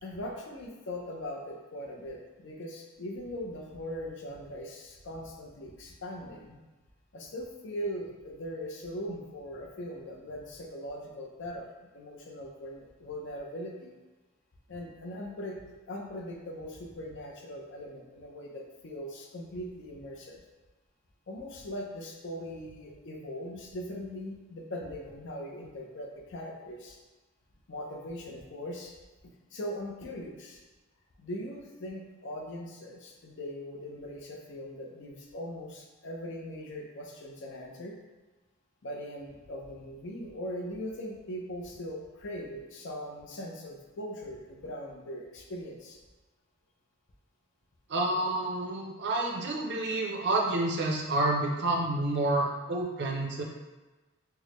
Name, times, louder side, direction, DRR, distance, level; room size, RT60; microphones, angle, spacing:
voice 1, 0.0-6.6 7.1-11.7 11.9-13.9 14.7-15.6 15.9-20.4 21.3-27.0 27.7-28.9 29.5-30.6 31.2-38.0 38.8-46.0, equal, 60° left, 0 dB, 0.6 m, -40 dB
voice 2, 47.9-53.4, right 2 dB, 55° right, 0 dB, 0.6 m, -29 dB
4.5 x 2.1 x 3.0 m, 1.2 s
head